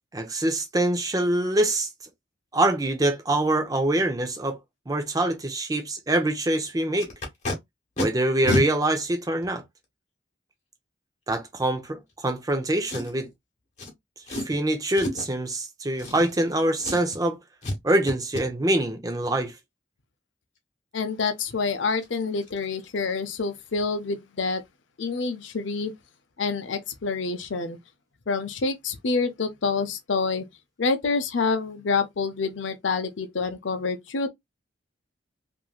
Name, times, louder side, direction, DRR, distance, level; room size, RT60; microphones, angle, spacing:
voice 1, 0.1-1.9 2.5-4.6 4.9-7.1 8.0-9.6 11.3-13.3 14.3-17.4 17.8-19.5, right 1 dB, 20° right, 0.6 m, -24 dB
Packing tape duct tape, 7.0-7.5 8.0-8.1 8.4-8.6 9.4-9.5 12.9-13.3 13.8-13.9 14.3-14.6 14.9-15.3 16.0-16.5 16.8-17.2 17.6-17.8 18.1-18.4 21.5-21.6 21.9-22.1 22.4-22.6 22.8-23.1 23.4-23.5, left 1 dB, 40° left, 1.2 m, -30 dB
voice 2, 20.9-24.6 25.0-25.9 26.4-27.8 28.3-30.4 30.8-34.3, left 4 dB, 70° left, 0.6 m, -27 dB
3.1 x 2.6 x 2.3 m
head